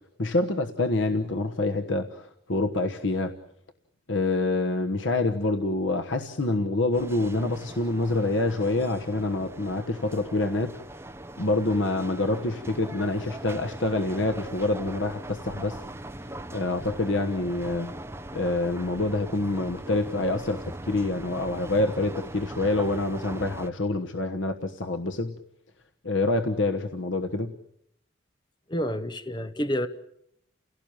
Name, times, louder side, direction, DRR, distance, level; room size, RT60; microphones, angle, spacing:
voice 1, 0.2-3.3 4.1-10.8 11.4-15.8 16.5-17.9 18.3-25.4 26.0-27.6, left 2 dB, 90° left, 1.3 m, -26 dB
sound 1, 6.9-23.7, right 1 dB, 15° right, 0.9 m, -40 dB
voice 2, 28.7-29.9, equal, 25° left, 0.9 m, -28 dB
29.5 x 17.0 x 9.0 m
head